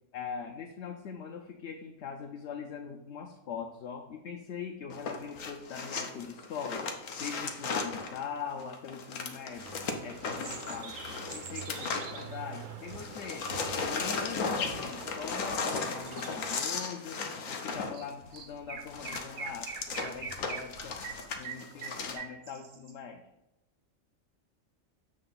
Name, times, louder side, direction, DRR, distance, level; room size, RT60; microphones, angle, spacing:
voice 1, 0.1-6.8 7.2-13.5 13.9-17.2 17.5-21.0 21.3-23.2, left 6 dB, 65° left, 4 dB, 0.9 m, -42 dB
sound 1, 4.9-12.6 12.9-22.1, left 4 dB, 85° left, 1.2 m, -36 dB
sound 2, 9.5-16.5, right 5 dB, 90° right, 1.2 m, -45 dB
Chirp tweet, 17.9-18.1 18.3-22.9, right 5 dB, 50° right, 0.8 m, -42 dB
7.8 x 3.4 x 5.6 m, 0.90 s
omnidirectional pair, 1.3 m